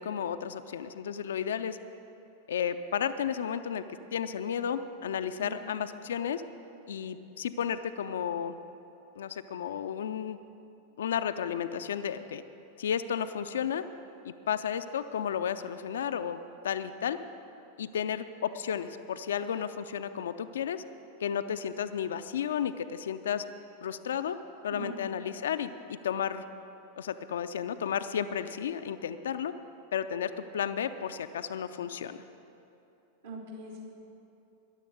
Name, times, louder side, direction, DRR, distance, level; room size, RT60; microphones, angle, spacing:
voice 1, 0.0-1.8 2.5-3.8 4.1-6.4 6.9-8.5 9.2-10.4 11.0-12.4 12.8-13.8 14.2-17.2 17.8-20.8 21.2-23.4 23.8-24.4 24.6-26.4 27.0-29.5 29.9-32.2, left 8 dB, 65° left, 10 dB, 0.5 m, -33 dB
voice 2, 24.7-25.1 33.2-33.8, right 2 dB, 70° right, -6 dB, 3.5 m, -41 dB
14.0 x 10.5 x 6.5 m, 2.9 s
figure-of-eight pair, 90°, 0 cm